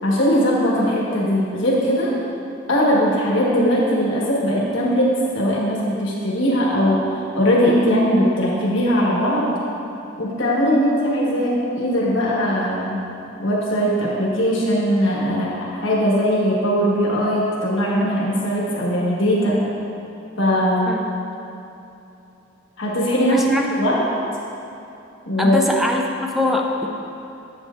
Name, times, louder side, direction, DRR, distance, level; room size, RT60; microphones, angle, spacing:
voice 1, 0.0-2.1 2.7-9.6 10.2-13.0 13.4-19.6 20.4-21.0 22.8-23.9 25.3-25.6, equal, 80° left, -5 dB, 1.2 m, -20 dB
voice 2, 23.2-23.7 25.4-26.9, left 2 dB, ahead, 0 dB, 0.5 m, -22 dB
7.9 x 7.7 x 2.4 m, 2.8 s
head